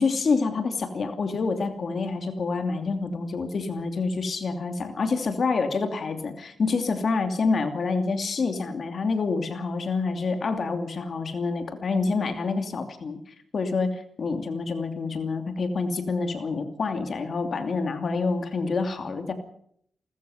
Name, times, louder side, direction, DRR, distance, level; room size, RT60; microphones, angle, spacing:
voice 1, 0.0-13.2 13.5-19.3, left 4 dB, 50° left, 7 dB, 2.7 m, -27 dB
29.5 x 14.0 x 6.5 m, 0.66 s
wide cardioid pair, 130°, 0 cm